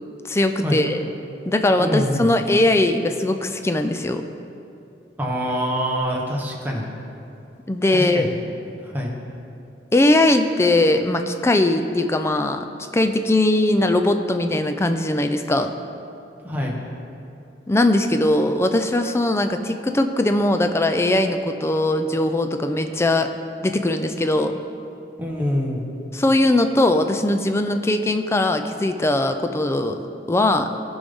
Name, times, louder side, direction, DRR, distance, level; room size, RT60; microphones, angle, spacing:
voice 1, 0.2-1.0 1.5-4.3 7.7-8.3 9.9-12.6 12.9-15.7 17.7-23.3 23.6-24.6 26.1-30.7, left 1 dB, 15° left, 7 dB, 0.4 m, -20 dB
voice 2, 1.8-2.3 5.2-6.9 7.9-8.4 8.8-9.1 16.4-16.8 25.2-25.9, equal, 10° right, -2 dB, 1.1 m, -25 dB
14.5 x 5.4 x 3.6 m, 2.7 s
head